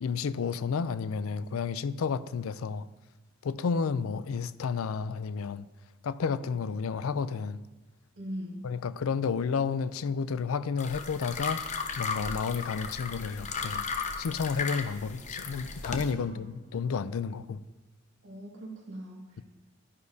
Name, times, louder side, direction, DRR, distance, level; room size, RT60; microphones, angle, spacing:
voice 1, 0.0-2.9 3.4-5.7 6.0-7.6 8.6-13.8 14.2-17.6, left 5 dB, 85° left, 0.4 m, -31 dB
voice 2, 8.2-8.6 16.2-16.4 18.2-19.4, equal, 60° right, 2.2 m, -41 dB
sound 1, 10.8-16.1, left 5 dB, 35° left, 0.8 m, -35 dB
12.0 x 9.6 x 2.7 m
head